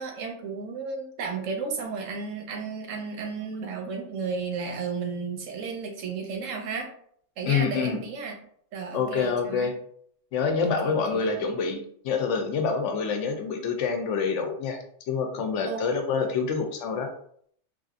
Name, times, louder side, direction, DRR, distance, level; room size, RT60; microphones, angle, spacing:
voice 1, 0.0-6.9 7.4-8.4 8.7-9.7 10.8-11.2 15.6-15.8, right 5 dB, 85° right, 3 dB, 1.1 m, -33 dB
voice 2, 7.4-8.0 8.9-9.7 10.3-14.8 15.1-17.1, left 5 dB, 75° left, 5 dB, 0.9 m, -27 dB
3.4 x 2.4 x 2.4 m, 0.63 s
omnidirectional pair, 1.3 m